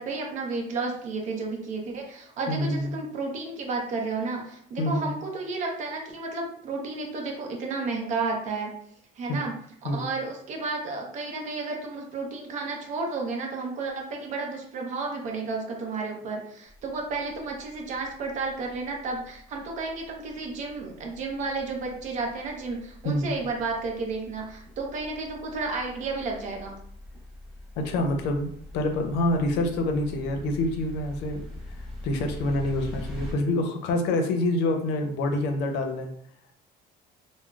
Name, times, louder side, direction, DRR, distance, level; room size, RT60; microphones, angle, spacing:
voice 1, 0.0-8.7 9.2-9.6 9.9-26.8, right 3 dB, 45° right, 1 dB, 0.6 m, -32 dB
voice 2, 2.5-2.9 4.8-5.1 9.3-9.4 9.8-10.0 23.0-23.3 27.8-31.4 32.0-36.1, left 1 dB, 80° left, 4 dB, 0.5 m, -26 dB
sound 1, 16.7-33.3, left 1 dB, 5° right, 1.0 m, -44 dB
3.6 x 2.0 x 2.3 m, 0.66 s
cardioid pair, 170°, 18 cm